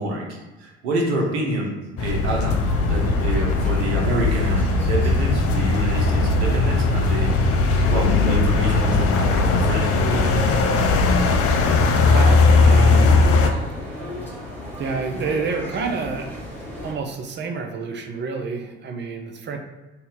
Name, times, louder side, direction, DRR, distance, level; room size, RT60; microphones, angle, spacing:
voice 1, 0.0-7.4 7.8-10.3, right 1 dB, 75° right, -1 dB, 0.9 m, -27 dB
sound 1, 2.0-13.5, left 3 dB, 45° left, 0.5 m, -18 dB
sound 2, 2.5-16.9, left 1 dB, 5° left, 1.1 m, -34 dB
voice 2, 12.0-13.4 14.8-16.4 16.8-19.6, right 4 dB, 35° right, 2 dB, 0.6 m, -28 dB
2.8 x 2.7 x 3.7 m, 1.1 s
hypercardioid pair, 60°, 33 cm